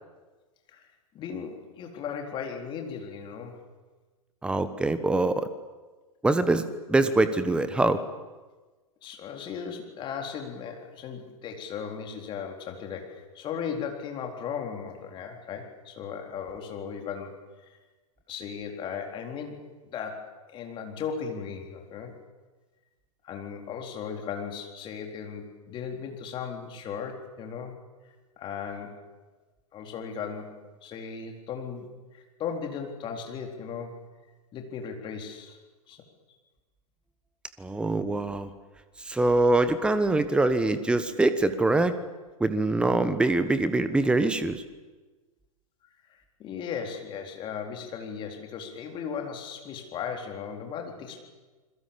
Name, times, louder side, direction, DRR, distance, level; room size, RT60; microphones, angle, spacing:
voice 1, 1.1-3.6 9.0-17.8 18.3-19.6 19.8-22.1 23.2-27.7 28.4-29.0 29.7-30.6 30.8-34.0 34.5-35.6 35.9-36.0 46.1-51.2, left 7 dB, 25° left, 2 dB, 3.9 m, -37 dB
voice 2, 4.4-5.5 6.2-8.0 37.6-38.5 39.0-41.9 42.4-44.6, right 2 dB, 5° right, 12 dB, 1.2 m, -24 dB
28.5 x 22.0 x 7.2 m, 1.3 s
figure-of-eight pair, 105°, 18 cm